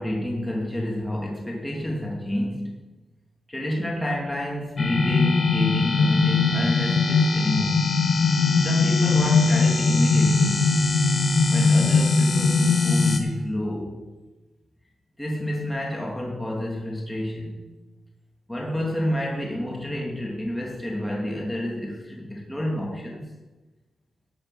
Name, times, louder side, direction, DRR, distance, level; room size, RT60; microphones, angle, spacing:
voice 1, 0.0-2.8 3.5-7.9 8.6-10.8 11.5-14.1 15.2-17.6 18.5-23.2, left 1 dB, 10° left, -2 dB, 2.7 m, -29 dB
sound 1, 4.8-13.2, left 4 dB, 45° left, 1.7 m, -20 dB
12.5 x 7.7 x 5.7 m, 1.1 s
cardioid pair, 75°, 0 cm